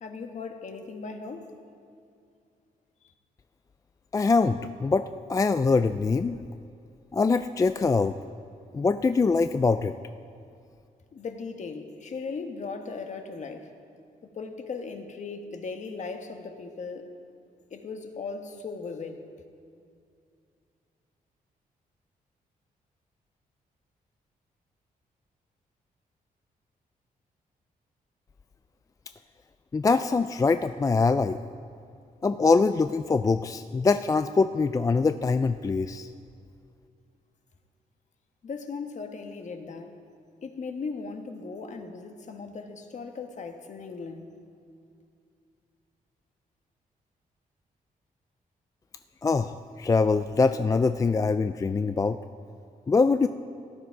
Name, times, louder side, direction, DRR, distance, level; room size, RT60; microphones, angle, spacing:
voice 1, 0.0-1.5 3.0-3.1 11.1-13.7 14.3-17.1 17.7-19.3 38.4-39.9 40.4-44.3, left 4 dB, 50° left, 6 dB, 1.3 m, -38 dB
voice 2, 4.1-6.4 7.1-8.2 8.7-9.9 29.7-31.4 32.2-36.1 49.2-52.2 52.9-53.3, left 4 dB, 20° left, 10 dB, 0.3 m, -23 dB
17.0 x 12.0 x 4.7 m, 2.4 s
cardioid pair, 100°, 15 cm